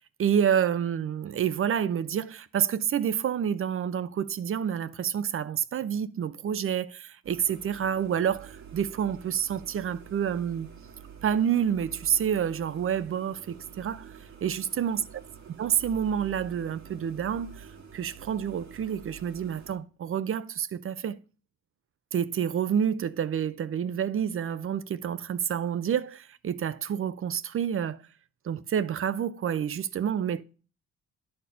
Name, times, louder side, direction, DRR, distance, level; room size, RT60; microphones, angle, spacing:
voice 1, 0.2-10.7 11.2-14.1 14.4-15.0 15.6-17.7 17.9-21.2 22.1-28.0 28.4-30.4, right 8 dB, 45° right, 0.6 m, -28 dB
sound 1, 7.2-19.8, right 7 dB, 65° right, 1.6 m, -48 dB
10.5 x 4.4 x 5.6 m
cardioid pair, 90°, 30 cm